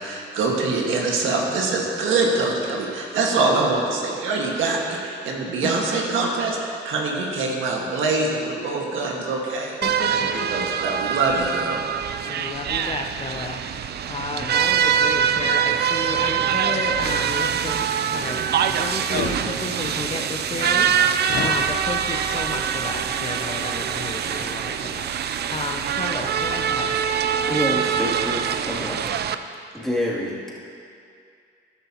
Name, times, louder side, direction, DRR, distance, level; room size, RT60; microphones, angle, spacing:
voice 1, 0.0-9.8 10.1-10.2 10.5-11.8, right 3 dB, 80° right, -1 dB, 1.7 m, -24 dB
voice 2, 9.8-10.7 12.3-27.0, left 3 dB, 30° left, 3 dB, 0.8 m, -32 dB
sound 1, 9.8-29.3, right 8 dB, 55° right, 0.5 m, -24 dB
sound 2, 19.0-19.4 21.2-21.6, left 6 dB, 65° left, 1.0 m, -28 dB
voice 3, 27.4-29.1 29.7-30.5, equal, ahead, -6 dB, 2.6 m, -27 dB
14.0 x 11.0 x 2.9 m, 2.4 s
cardioid pair, 90°, 20 cm